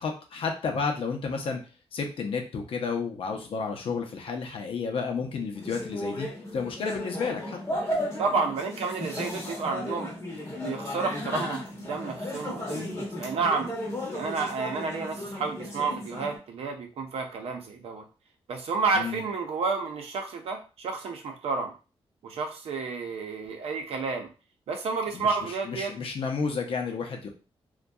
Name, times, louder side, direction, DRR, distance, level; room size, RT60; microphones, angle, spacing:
voice 1, 0.0-1.6 1.9-6.3 6.5-7.6 19.0-19.2 25.1-25.4 25.7-27.3, left 5 dB, 65° left, 3 dB, 0.6 m, -31 dB
sound 1, 5.6-16.4, left 1 dB, 30° left, 0.8 m, -35 dB
voice 2, 8.2-10.1 10.6-13.7 14.1-18.1 18.5-21.7 22.2-24.3 24.7-25.9, right 4 dB, 80° right, 3 dB, 0.6 m, -30 dB
2.6 x 2.2 x 2.2 m, 0.33 s
cardioid pair, 110°, 10 cm